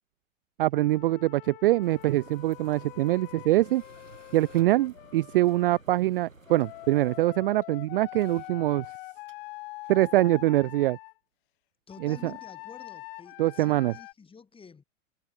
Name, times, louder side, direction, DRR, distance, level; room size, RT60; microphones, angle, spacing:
voice 1, 0.6-3.8 4.3-8.9 9.9-11.0 12.0-12.2 13.4-13.9, right 16 dB, 45° right, 0.5 m, -24 dB
Wind instrument woodwind instrument, 0.7-5.8 6.5-11.1 11.9-14.1, left 22 dB, 45° left, 1.2 m, -44 dB
sound 1, 1.8-7.3, right 2 dB, 90° right, 3.2 m, -53 dB
Tools, 3.1-10.2, right 7 dB, 70° right, 7.1 m, -61 dB
voice 2, 11.9-14.8, left 5 dB, 15° left, 5.1 m, -49 dB
figure-of-eight pair, 95°, 39 cm